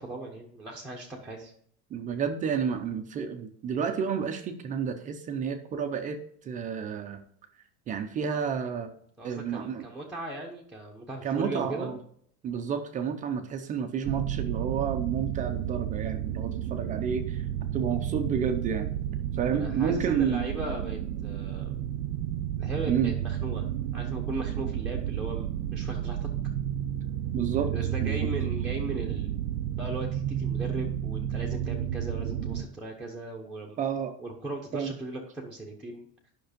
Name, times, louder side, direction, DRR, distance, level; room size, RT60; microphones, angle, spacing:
voice 1, 0.0-1.5 9.2-11.9 19.5-21.7 22.6-26.3 27.7-29.3 29.8-33.8 34.2-36.3, right 2 dB, ahead, -4 dB, 0.9 m, -38 dB
voice 2, 1.9-7.2 7.9-8.9 9.2-9.9 11.2-12.0 12.4-17.5 17.7-18.9 19.3-20.4 22.9-23.1 27.3-27.7 28.0-28.2 33.8-34.2 34.7-34.9, right 7 dB, 20° right, 7 dB, 0.6 m, -30 dB
sound 1, 14.0-32.6, right 10 dB, 65° right, 0.8 m, -31 dB
10.5 x 6.0 x 5.1 m, 0.65 s
cardioid pair, 180°, 34 cm